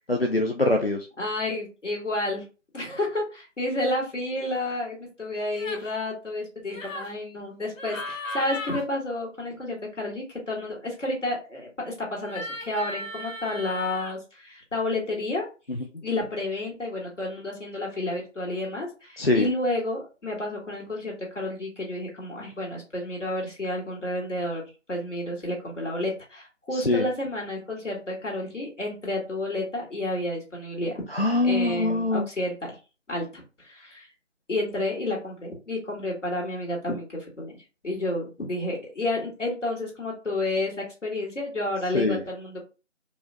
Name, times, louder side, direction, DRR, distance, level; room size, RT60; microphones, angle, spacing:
voice 1, 0.1-1.1 15.7-15.8 19.2-19.4 26.8-27.0 31.1-32.3 41.9-42.2, left 2 dB, 50° left, 3 dB, 0.5 m, -23 dB
voice 2, 1.2-2.4 2.7-15.5 16.0-24.6 24.9-31.0 31.4-32.8 33.1-34.1 34.5-37.5 37.8-42.6, left 1 dB, 70° left, -3 dB, 2.1 m, -30 dB
sound 1, 5.5-5.9 6.7-7.1 7.8-8.8 12.2-14.2, left 2 dB, 85° left, 1.0 m, -36 dB
4.8 x 2.2 x 2.7 m, 0.31 s
figure-of-eight pair, 175°, 38 cm